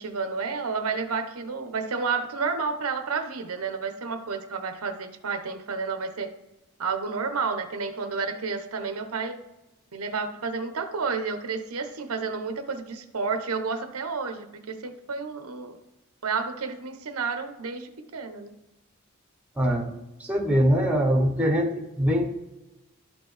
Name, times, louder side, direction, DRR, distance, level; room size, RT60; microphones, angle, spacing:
voice 1, 0.0-6.3 6.8-9.4 9.9-15.8 16.2-18.5, right 4 dB, 85° right, 8 dB, 0.8 m, -31 dB
voice 2, 19.6-19.9 20.2-22.3, equal, 5° right, 2 dB, 0.9 m, -23 dB
12.0 x 4.4 x 3.3 m, 0.99 s
head